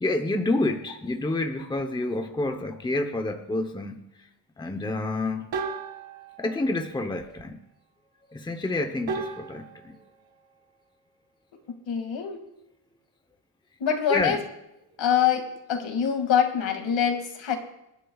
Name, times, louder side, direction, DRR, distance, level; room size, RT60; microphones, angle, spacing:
voice 1, 0.0-4.0 4.6-5.4 6.4-7.6 8.3-9.9 14.1-14.4, left 2 dB, 10° left, 5 dB, 0.8 m, -28 dB
sound 1, 0.6-1.5 5.5-7.6 9.1-12.5 12.8-13.1 13.9-15.4 15.7-16.0, right 5 dB, 80° right, 2.1 m, -40 dB
voice 2, 11.9-12.4 13.8-14.4 15.0-15.4 15.7-17.6, left 8 dB, 80° left, 4 dB, 2.3 m, -24 dB
26.5 x 11.5 x 2.4 m, 0.84 s
wide cardioid pair, 165°, 45 cm